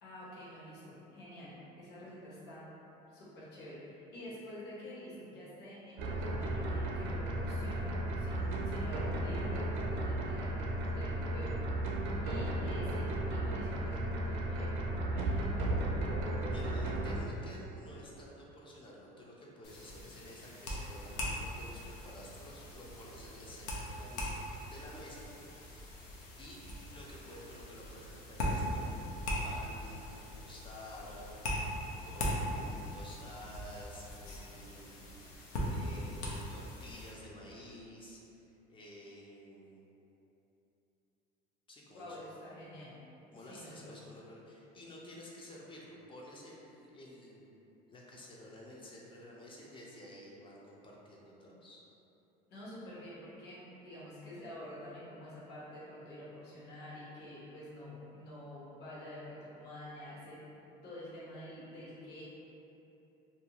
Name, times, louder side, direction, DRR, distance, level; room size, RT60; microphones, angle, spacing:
voice 1, 0.0-2.7 3.1-11.6 12.2-15.5 41.9-43.0 43.4-44.0 52.5-60.4 60.8-62.2, equal, 55° left, -8 dB, 1.1 m, -48 dB
sound 1, 6.0-17.2, right 1 dB, 75° right, 0.5 m, -34 dB
voice 2, 16.5-25.3 26.0-29.2 29.4-39.8 41.7-42.2 43.3-51.8, left 1 dB, 25° left, -4 dB, 0.5 m, -52 dB
sound 2, 19.6-37.1, equal, 90° left, 0.6 m, -40 dB
2.5 x 2.2 x 2.8 m, 2.9 s
supercardioid pair, 95°, 20 cm